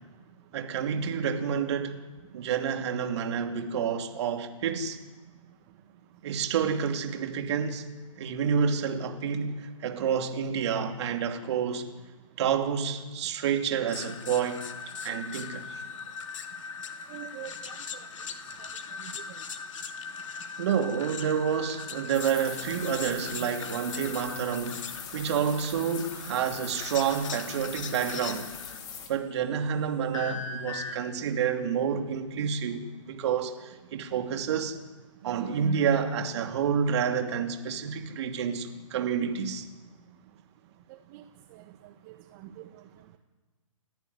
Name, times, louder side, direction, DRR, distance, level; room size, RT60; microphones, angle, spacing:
voice 1, 0.5-2.0 2.3-5.0 6.2-7.8 8.2-11.9 12.4-14.6 15.0-15.8 20.6-28.5 29.1-34.8 35.2-39.7, right 7 dB, 50° right, 2.9 m, -29 dB
sound 1, 13.9-28.8 30.1-31.0, left 5 dB, 65° left, 2.6 m, -40 dB
voice 2, 17.1-17.8 18.6-18.7 40.9-41.2 41.5-41.6 42.1-42.7, right 12 dB, 35° right, 1.5 m, -45 dB
sound 2, 22.1-29.1, left 7 dB, 25° left, 3.7 m, -42 dB
30.0 x 11.0 x 9.7 m
hypercardioid pair, 130°, 18 cm